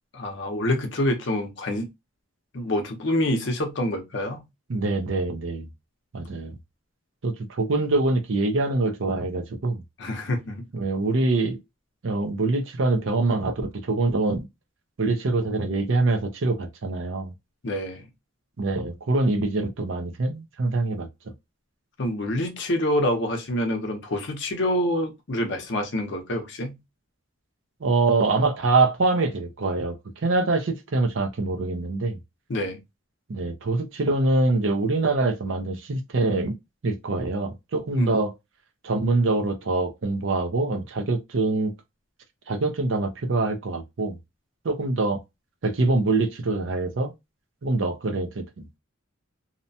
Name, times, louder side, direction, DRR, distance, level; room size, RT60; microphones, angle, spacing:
voice 1, 0.1-1.9 2.5-4.5 10.0-10.6 17.6-18.1 22.0-26.8 32.5-32.8 38.0-38.1, left 1 dB, 55° left, 0.7 m, -26 dB
voice 2, 4.7-5.7 6.1-6.6 7.2-9.8 10.7-11.6 12.0-14.4 15.0-17.3 18.6-21.1 27.8-32.2 33.3-36.6 36.8-38.3 38.8-41.7 42.5-44.2 44.6-45.2 45.6-47.1 47.6-48.7, right 3 dB, 65° right, 0.5 m, -24 dB
2.8 x 2.1 x 2.6 m
head